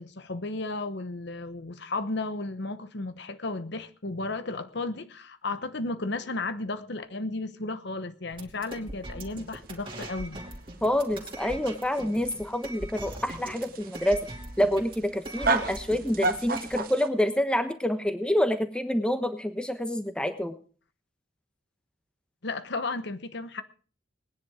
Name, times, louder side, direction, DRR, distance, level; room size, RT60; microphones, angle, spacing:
voice 1, 0.0-10.4 22.4-23.6, left 3 dB, 55° left, 1.0 m, -34 dB
sound 1, 8.3-16.8, right 1 dB, 25° right, 2.7 m, -41 dB
sound 2, 9.5-17.1, right 3 dB, 45° right, 1.3 m, -33 dB
voice 2, 10.8-14.2 14.6-20.5, left 1 dB, 5° left, 1.1 m, -27 dB
19.5 x 10.5 x 4.9 m
head